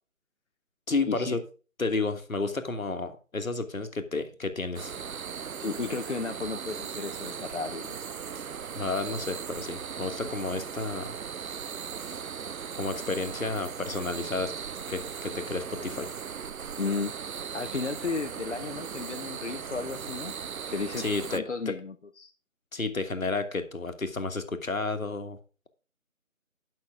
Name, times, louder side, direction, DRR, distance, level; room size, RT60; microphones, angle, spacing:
voice 1, 0.9-1.4 1.8-4.9 8.7-11.2 12.0-12.2 12.8-14.5 14.9-16.1 21.0-21.7 22.7-25.4, left 3 dB, 75° left, 8 dB, 1.5 m, -31 dB
Rivers and crickets in Chinese town (Songpan), 4.8-21.4, right 7 dB, 80° right, 0.6 m, -38 dB
voice 2, 5.6-7.9 16.8-17.1 17.5-20.3 20.7-21.0 21.3-22.3, left 4 dB, 55° left, 6 dB, 0.7 m, -33 dB
10.0 x 5.9 x 4.8 m, 0.36 s
figure-of-eight pair, 155°, 41 cm